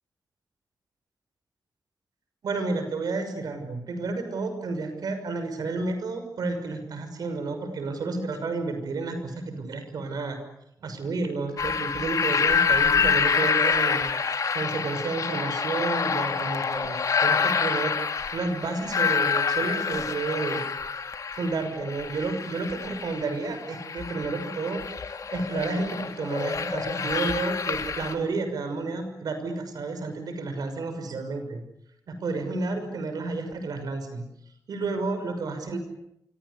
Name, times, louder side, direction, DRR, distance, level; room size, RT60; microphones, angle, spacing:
voice 1, 2.4-10.4 10.8-14.1 14.5-17.0 17.2-17.9 18.3-20.6 21.3-24.8 25.3-31.6 32.1-34.2 34.7-35.8, right 3 dB, 90° right, 7 dB, 6.2 m, -31 dB
sound 1, 11.6-28.1, left 6 dB, 60° left, 2.7 m, -27 dB
28.0 x 25.0 x 8.5 m, 0.80 s
wide cardioid pair, 140°, 6 cm